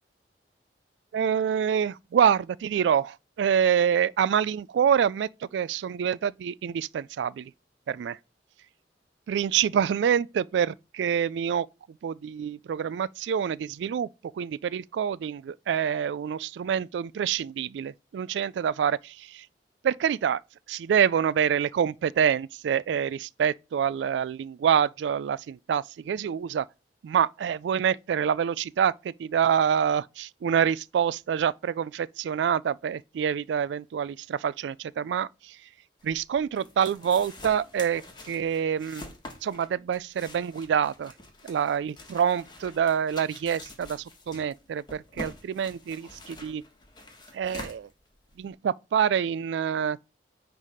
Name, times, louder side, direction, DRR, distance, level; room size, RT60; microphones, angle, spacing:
voice 1, 1.1-7.5 7.9-8.2 9.3-11.7 12.0-14.1 14.3-19.5 19.8-20.4 20.7-26.7 27.0-35.6 36.0-38.0 38.3-39.0 39.4-41.1 41.4-46.6 47.3-47.9 48.4-50.0, right 8 dB, 80° right, 0.3 m, -26 dB
sound 1, 36.0-48.5, left 1 dB, 25° left, 1.4 m, -46 dB
9.7 x 3.4 x 4.8 m
head